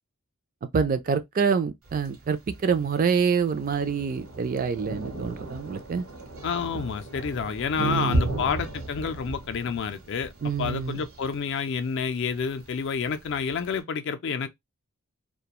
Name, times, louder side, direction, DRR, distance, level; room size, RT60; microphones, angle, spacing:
voice 1, 0.7-6.0 7.8-8.3 10.4-11.0, right 6 dB, 40° right, 0.3 m, -26 dB
Thunder, 1.8-13.8, right 1 dB, 80° right, 0.9 m, -36 dB
voice 2, 6.4-10.3 10.6-14.5, left 6 dB, 55° left, 0.4 m, -29 dB
2.3 x 2.2 x 2.8 m
head